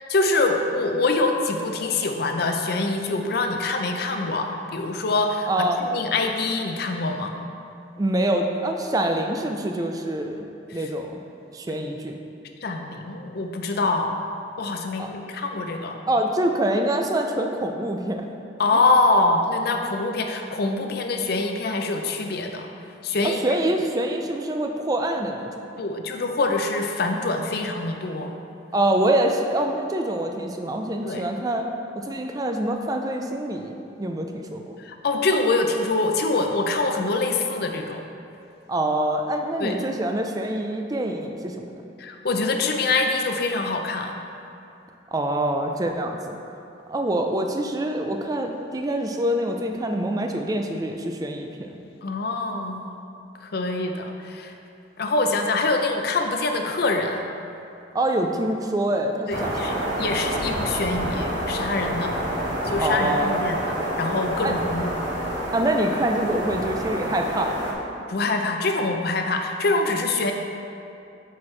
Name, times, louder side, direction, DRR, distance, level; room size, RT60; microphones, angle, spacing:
voice 1, 0.1-7.3 12.6-14.1 14.6-16.0 18.6-22.7 23.0-23.4 25.8-28.3 31.0-31.2 34.8-38.0 39.6-39.7 42.0-44.1 52.0-52.9 53.4-54.5 55.0-57.3 59.3-62.2 62.6-63.5 64.0-64.9 68.1-70.3, left 3 dB, 55° left, 4 dB, 0.5 m, -24 dB
voice 2, 5.5-5.8 8.0-10.5 10.7-11.2 11.5-12.2 15.0-15.1 16.1-18.3 23.2-25.7 28.7-31.7 32.0-34.8 38.7-41.9 45.1-46.4 46.9-51.8 57.9-59.9 62.8-63.4 64.4-64.5 65.5-67.6, right 1 dB, 20° right, 3 dB, 0.4 m, -25 dB
sound 1, 59.3-67.7, equal, 70° right, 1.1 m, -28 dB
8.2 x 4.5 x 3.2 m, 2.6 s
head